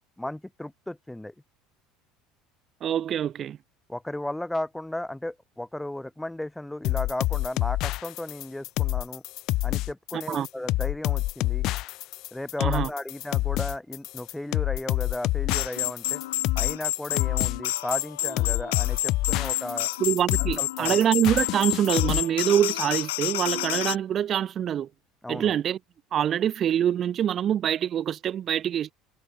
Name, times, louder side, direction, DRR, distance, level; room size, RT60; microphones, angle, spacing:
voice 1, 0.2-1.3 3.9-9.2 9.6-11.7 12.3-16.2 16.6-19.9 20.4-21.0 25.2-25.5, left 1 dB, 5° left, 2.4 m, -35 dB
voice 2, 2.8-3.6 10.1-10.5 12.6-12.9 20.0-24.9 25.3-25.8 26.1-28.9, right 10 dB, 45° right, 0.4 m, -25 dB
sound 1, 6.8-22.2, left 18 dB, 60° left, 1.1 m, -27 dB
sound 2, 15.5-24.0, left 16 dB, 80° left, 1.4 m, -29 dB
hypercardioid pair, 80°, 0 cm